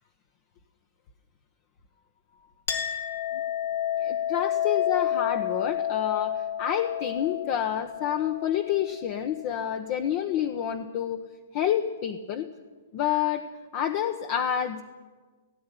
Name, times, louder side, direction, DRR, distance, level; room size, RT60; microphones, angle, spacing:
Chink clink, 2.7-9.7, left 10 dB, 65° left, 3.2 m, -30 dB
voice 1, 4.0-11.2 11.5-12.5 12.9-13.4 13.7-14.8, left 10 dB, 35° left, 7 dB, 1.2 m, -28 dB
17.5 x 16.5 x 10.0 m, 1.4 s
hypercardioid pair, 155°, 0 cm